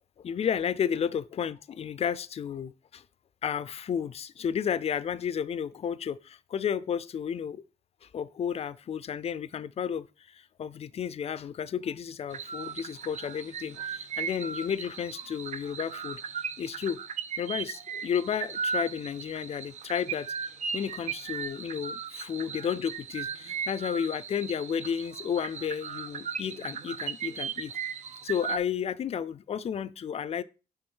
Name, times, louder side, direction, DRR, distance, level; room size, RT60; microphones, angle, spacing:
voice 1, 0.0-3.0 3.4-7.6 8.0-16.2 16.6-17.0 17.4-20.3 20.7-27.7 28.2-30.4, left 8 dB, 45° left, 0.5 m, -32 dB
sound 1, 12.3-28.6, right 6 dB, 50° right, 0.6 m, -37 dB
6.5 x 3.6 x 6.2 m
cardioid pair, 120°, 15 cm